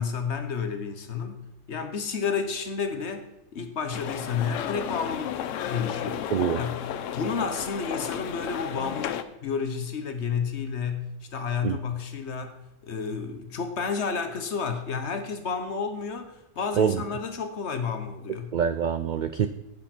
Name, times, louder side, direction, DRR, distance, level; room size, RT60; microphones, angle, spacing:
voice 1, 0.0-6.9 7.1-12.6 12.8-18.5, left 6 dB, 60° left, 8 dB, 1.3 m, -31 dB
sound 1, 3.9-9.2, left 10 dB, 75° left, 1.0 m, -33 dB
voice 2, 6.3-6.6 11.6-11.8 16.8-17.0 18.5-19.5, right 8 dB, 85° right, 10 dB, 0.4 m, -25 dB
10.0 x 8.6 x 4.4 m, 0.90 s
omnidirectional pair, 1.3 m